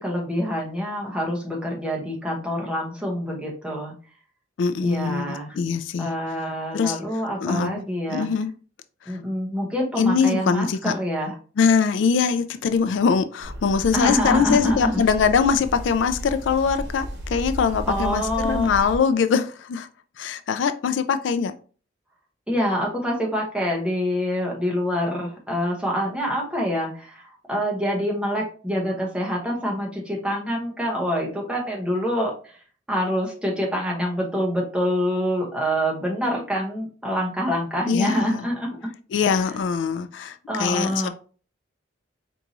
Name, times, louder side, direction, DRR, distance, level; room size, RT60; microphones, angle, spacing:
voice 1, 0.0-3.9 4.8-5.6 6.0-8.3 9.1-11.4 13.9-15.0 17.9-18.7 22.5-32.6 32.9-38.9 39.3-39.6 40.5-41.1, equal, 5° right, 0.9 m, -26 dB
voice 2, 4.6-6.1 6.7-7.0 7.4-7.7 8.1-8.5 9.1-9.2 10.0-10.9 11.6-19.9 20.2-21.5 37.9-38.4 39.1-41.1, left 6 dB, 75° left, 0.3 m, -22 dB
sound 1, 13.4-19.0, equal, 65° right, 1.1 m, -34 dB
4.5 x 2.6 x 2.9 m
head